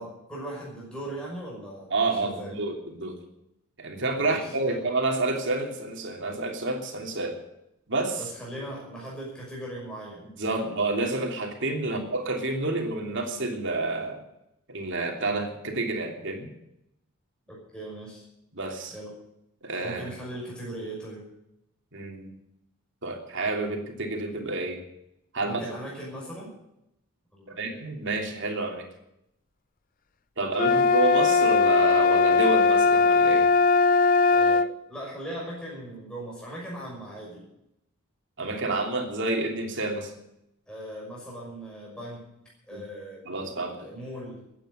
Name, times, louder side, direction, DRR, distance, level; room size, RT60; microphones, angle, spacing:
voice 1, 0.0-2.5 4.2-4.9 8.2-10.7 11.8-12.1 17.5-18.2 18.9-19.1 19.8-21.2 25.4-26.5 27.3-27.8 30.5-30.7 34.3-37.5 40.7-43.2 43.8-44.4, right 1 dB, 5° left, -5 dB, 5.9 m, -39 dB
voice 2, 1.9-3.2 3.8-7.4 7.9-8.2 10.4-14.2 14.7-16.5 18.5-18.9 19.6-20.0 21.9-22.4 23.0-24.8 25.3-25.6 27.6-28.9 30.4-33.5 38.4-40.1 42.7-42.8 43.3-43.9, right 2 dB, 55° right, 2 dB, 3.1 m, -29 dB
sound 1, 30.5-34.7, left 4 dB, 40° left, 0.6 m, -20 dB
14.5 x 9.1 x 9.7 m, 0.83 s
head